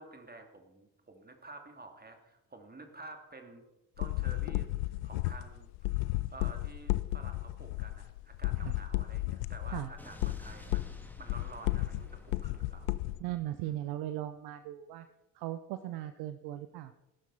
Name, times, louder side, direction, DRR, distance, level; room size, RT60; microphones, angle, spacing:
voice 1, 0.0-3.6 4.0-12.9 13.6-13.8, right 2 dB, 20° right, 5 dB, 2.7 m, -50 dB
sound 1, 4.0-13.2, left 19 dB, 65° left, 0.7 m, -33 dB
Explosion, 10.0-14.0, left 1 dB, 5° left, 2.4 m, -53 dB
voice 2, 13.2-15.1 15.3-16.9, right 13 dB, 55° right, 12 dB, 0.7 m, -38 dB
16.5 x 12.0 x 4.2 m, 0.94 s
figure-of-eight pair, 40°, 45 cm